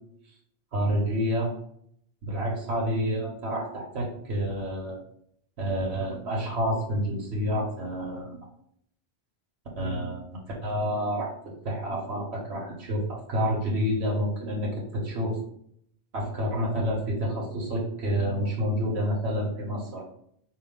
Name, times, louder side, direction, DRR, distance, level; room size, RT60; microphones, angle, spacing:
voice 1, 0.7-1.5 2.2-5.0 5.6-8.4 9.8-11.3 11.6-15.4 16.1-20.0, equal, 85° right, -3 dB, 1.2 m, -29 dB
4.8 x 2.6 x 3.6 m, 0.69 s
omnidirectional pair, 1.1 m